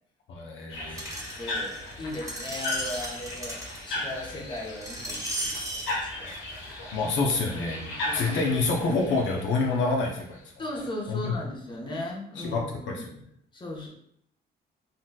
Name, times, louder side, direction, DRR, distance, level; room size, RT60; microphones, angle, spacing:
voice 1, 0.3-1.1 6.9-10.4 11.1-11.3 12.4-12.6 12.9-13.2, left 3 dB, 70° left, 0 dB, 0.6 m, -27 dB
sound 1, 0.7-10.4, left 2 dB, 90° left, 1.0 m, -37 dB
voice 2, 0.8-6.3 8.0-8.4 10.6-13.0 13.5-13.9, left 1 dB, 25° left, -2 dB, 0.8 m, -37 dB
Screech, 1.0-5.9 6.6-6.7, right 1 dB, 15° right, 0.8 m, -36 dB
3.8 x 2.3 x 2.2 m, 0.70 s
cardioid pair, 90°, 20 cm